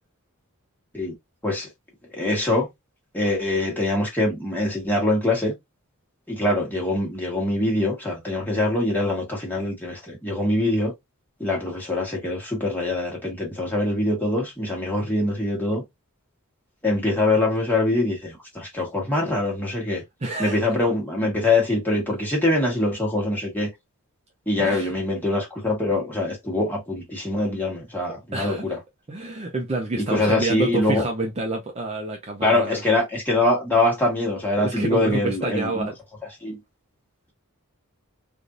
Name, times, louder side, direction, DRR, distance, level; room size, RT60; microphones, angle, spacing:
voice 1, 2.1-2.7 3.1-5.5 6.3-10.9 11.4-15.8 16.8-20.0 20.4-23.7 24.5-28.8 30.0-31.0 32.4-35.9 36.4-36.6, left 2 dB, 10° left, 1.3 m, -23 dB
voice 2, 20.2-20.6 24.6-24.9 28.3-28.8 29.1-32.8 34.6-35.9, right 2 dB, 30° right, 0.5 m, -28 dB
3.3 x 2.6 x 2.4 m
head